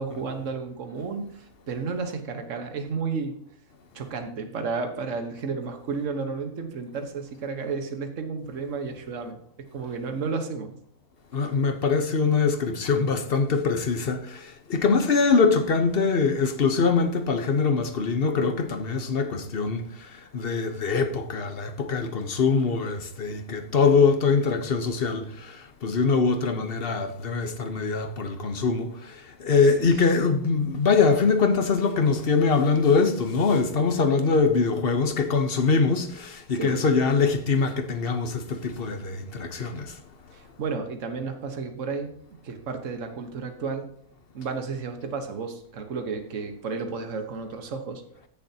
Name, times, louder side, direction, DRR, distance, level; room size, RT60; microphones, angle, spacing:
voice 1, 0.0-3.3 3.9-9.4 9.7-10.7 11.5-11.6 36.6-36.8 40.3-42.1 42.4-43.9 44.3-48.0, right 4 dB, 60° right, 1.6 m, -32 dB
voice 2, 11.3-40.0, left 4 dB, 45° left, 1.0 m, -23 dB
15.5 x 7.0 x 2.8 m
omnidirectional pair, 1.5 m